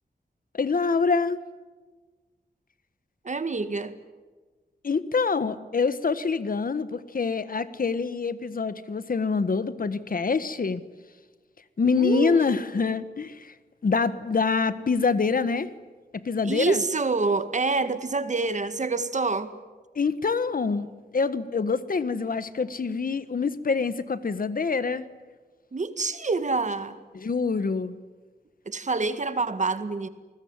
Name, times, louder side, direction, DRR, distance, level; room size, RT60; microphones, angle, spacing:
voice 1, 0.5-1.4 4.8-10.8 11.8-13.5 13.8-15.7 16.1-16.8 19.9-25.0 27.1-27.9, left 4 dB, 55° left, 14 dB, 1.4 m, -25 dB
voice 2, 3.2-4.0 12.0-12.5 16.4-19.5 25.7-27.0 28.7-30.1, right 3 dB, 45° right, 11 dB, 1.8 m, -27 dB
28.5 x 20.5 x 9.7 m, 1.3 s
wide cardioid pair, 120°, 17 cm